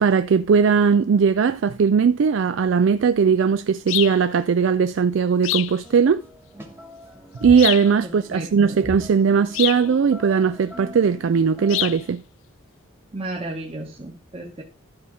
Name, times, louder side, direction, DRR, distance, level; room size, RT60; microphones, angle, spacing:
voice 1, 0.0-6.2 7.4-12.2, right 6 dB, 70° right, 0.4 m, -19 dB
sound 1, 3.9-4.2 5.4-5.8 7.6-7.9 9.5-9.9 11.7-12.0, left 16 dB, 75° left, 0.3 m, -25 dB
sound 2, 5.8-12.1, equal, 10° right, 1.1 m, -41 dB
voice 2, 8.0-8.8 13.1-14.6, right 2 dB, 30° right, 1.3 m, -34 dB
12.0 x 4.3 x 4.8 m
head